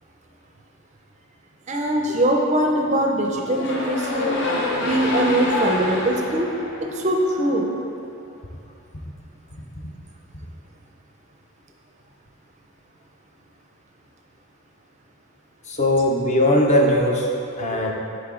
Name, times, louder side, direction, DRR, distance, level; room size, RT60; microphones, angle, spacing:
voice 1, 1.7-4.4 4.8-6.5 6.9-7.7, right 1 dB, 30° right, 1 dB, 0.5 m, -22 dB
sound 1, 3.4-7.6, left 1 dB, 55° left, 0.8 m, -27 dB
voice 2, 15.7-17.3 17.6-17.9, left 1 dB, 30° left, 0 dB, 0.5 m, -19 dB
8.6 x 3.6 x 3.6 m, 2.6 s
head